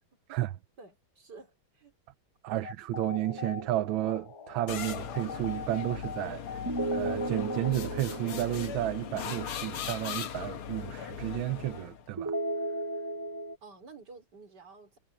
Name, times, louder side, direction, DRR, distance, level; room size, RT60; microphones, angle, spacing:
voice 1, 0.8-1.9 2.5-2.7 13.6-15.0, right 4 dB, 50° right, 4.3 m, -51 dB
voice 2, 2.4-6.6 6.9-12.3, right 14 dB, 75° right, 1.5 m, -32 dB
sound 1, 2.6-7.7, left 6 dB, 55° left, 1.3 m, -42 dB
sound 2, 3.1-4.7 6.7-9.8 12.2-13.6, right 1 dB, 20° right, 0.5 m, -36 dB
sound 3, 4.7-12.1, left 8 dB, 90° left, 2.3 m, -39 dB
omnidirectional pair, 2.3 m